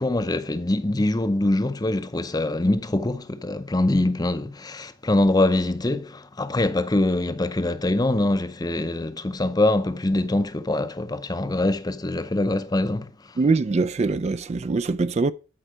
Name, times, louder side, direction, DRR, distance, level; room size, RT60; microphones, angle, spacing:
voice 1, 0.0-13.4, left 2 dB, 20° left, 0.6 m, -24 dB
voice 2, 13.4-15.3, right 3 dB, 35° right, 0.3 m, -23 dB
12.5 x 4.5 x 5.0 m
head